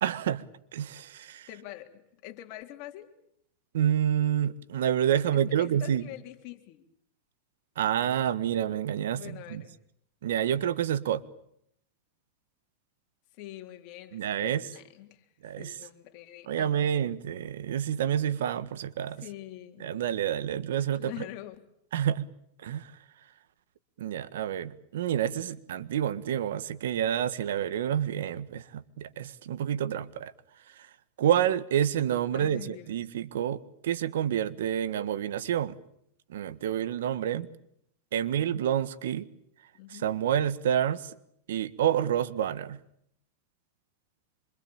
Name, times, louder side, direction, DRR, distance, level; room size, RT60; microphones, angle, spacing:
voice 1, 0.0-0.4 0.7-1.5 3.7-6.1 7.8-9.2 9.5-9.6 10.2-11.2 14.1-14.6 15.4-15.8 16.5-19.2 19.8-21.1 21.9-22.3 22.6-22.9 24.0-30.3 30.8-30.9 31.2-35.7 36.3-37.5 38.1-39.3 39.9-41.1 41.5-42.8, right 10 dB, 85° right, 1.6 m, -28 dB
voice 2, 1.5-3.1 5.3-6.8 9.1-9.7 13.4-15.3 15.6-17.2 19.2-20.0 21.0-21.7 32.3-33.0 39.7-40.1, left 14 dB, 50° left, 3.5 m, -45 dB
26.5 x 24.5 x 8.9 m
supercardioid pair, 150°, 0 cm